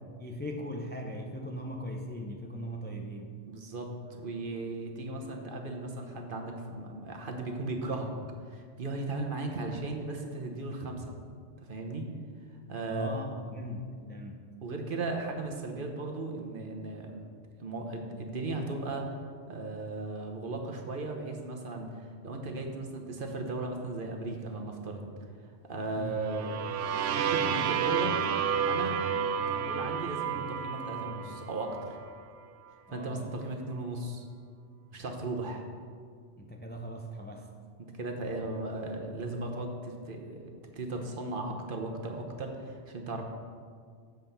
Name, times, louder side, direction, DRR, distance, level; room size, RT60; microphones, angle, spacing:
voice 1, 0.2-3.3 12.9-14.5 26.0-26.2 32.9-33.3 36.4-37.5, equal, 15° left, 2 dB, 0.4 m, -39 dB
voice 2, 3.5-8.1 8.5-11.1 11.7-12.1 12.7-13.4 14.6-17.1 17.6-19.1 19.5-25.1 25.7-26.5 27.1-28.1 28.7-29.0 29.3-32.0 32.9-34.3 34.9-35.7 37.8-40.4 40.7-43.2, right 2 dB, 50° right, 2 dB, 1.1 m, -36 dB
sound 1, 26.2-32.0, right 7 dB, 90° right, 0.9 m, -31 dB
7.7 x 5.2 x 6.9 m, 2.1 s
omnidirectional pair, 1.2 m